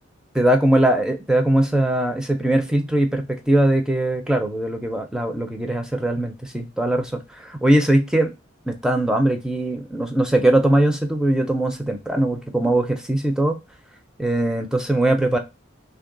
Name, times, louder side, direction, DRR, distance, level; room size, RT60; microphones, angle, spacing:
voice 1, 0.3-8.3 8.7-13.6 14.2-15.4, right 1 dB, 5° right, 4 dB, 0.4 m, -20 dB
3.1 x 2.2 x 3.7 m, 0.25 s
head